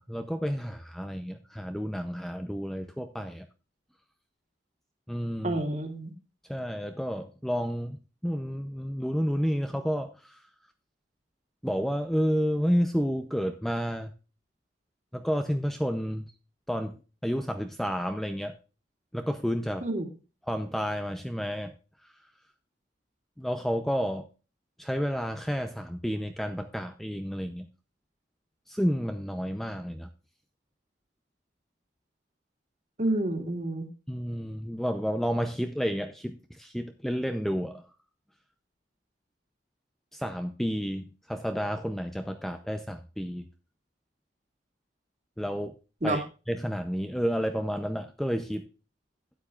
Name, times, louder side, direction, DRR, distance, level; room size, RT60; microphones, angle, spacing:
voice 1, 0.0-3.5 5.1-5.6 6.5-8.0 8.2-10.4 11.6-14.1 15.1-16.3 16.7-17.0 17.2-18.6 19.1-19.8 20.5-21.7 23.4-24.3 24.8-27.7 28.7-30.1 34.1-37.8 40.1-43.5 45.4-45.8 46.0-48.7, equal, ahead, 0.6 m, -30 dB
voice 2, 5.4-6.1 19.8-20.1 33.0-33.9 46.0-46.2, right 1 dB, 40° right, 2.2 m, -29 dB
13.0 x 9.3 x 2.4 m
head